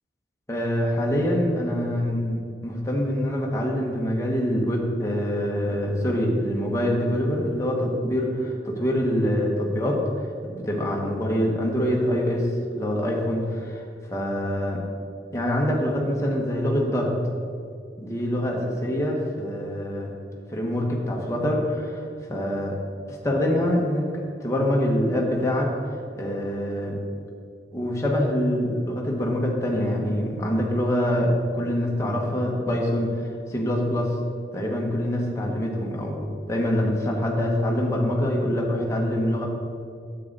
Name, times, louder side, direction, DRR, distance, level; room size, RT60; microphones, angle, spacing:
voice 1, 0.5-10.0 10.5-12.5 12.7-13.8 14.1-14.8 15.3-17.1 18.0-20.1 20.5-22.0 22.3-22.8 23.1-24.1 24.4-25.7 26.1-27.0 27.7-34.1 34.5-39.5, equal, 15° left, -2 dB, 1.4 m, -25 dB
9.6 x 7.8 x 4.0 m, 2.3 s
head